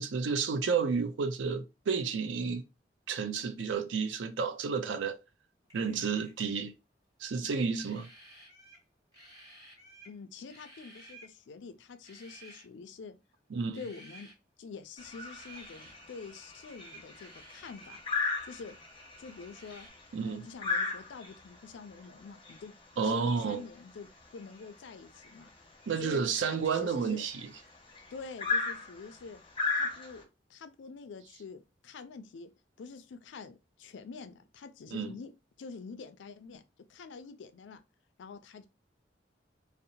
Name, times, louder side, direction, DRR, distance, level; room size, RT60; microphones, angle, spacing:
voice 1, 0.0-2.6 3.1-5.2 5.7-6.7 7.2-8.1 13.5-13.8 20.1-20.5 23.0-23.6 25.9-27.5 34.9-35.1, right 5 dB, 80° right, 0.4 m, -31 dB
sound 1, 5.6-6.4 7.8-8.8 9.1-10.2 10.5-11.3 12.0-12.6 13.7-14.3 15.3-15.9 16.6-18.1 19.5-19.9, right 1 dB, 20° right, 1.1 m, -54 dB
voice 2, 10.1-13.2 13.8-14.3 14.6-18.0 18.4-18.8 19.2-19.9 20.2-25.5 26.0-27.3 28.1-29.4 29.7-32.5 32.8-35.3 35.6-36.6 36.9-37.8 38.2-38.7, left 4 dB, 75° left, 0.4 m, -46 dB
sound 2, 15.0-30.2, left 4 dB, 30° left, 0.8 m, -37 dB
2.7 x 2.0 x 2.7 m
head